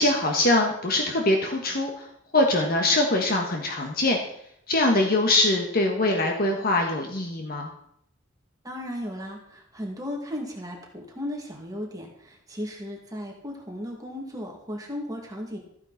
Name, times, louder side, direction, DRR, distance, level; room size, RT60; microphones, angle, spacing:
voice 1, 0.0-2.1 2.3-4.2 4.7-7.7, left 2 dB, 50° left, 2 dB, 1.4 m, -23 dB
voice 2, 8.6-15.6, left 1 dB, 20° right, 0 dB, 2.2 m, -35 dB
14.0 x 9.5 x 4.1 m, 0.74 s
head